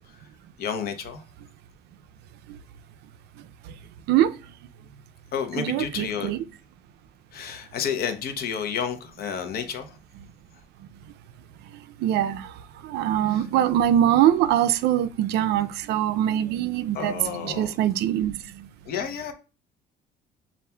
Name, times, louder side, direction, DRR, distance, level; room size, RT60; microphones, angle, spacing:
voice 1, 0.6-1.2 5.3-6.3 7.3-10.0 13.3-13.4 16.9-17.7 18.8-19.3, left 7 dB, 65° left, 0.8 m, -31 dB
voice 2, 5.6-6.4 12.0-12.5 12.8-18.4, right 11 dB, 75° right, 0.4 m, -23 dB
6.9 x 2.4 x 2.2 m
cardioid pair, 110°, 17 cm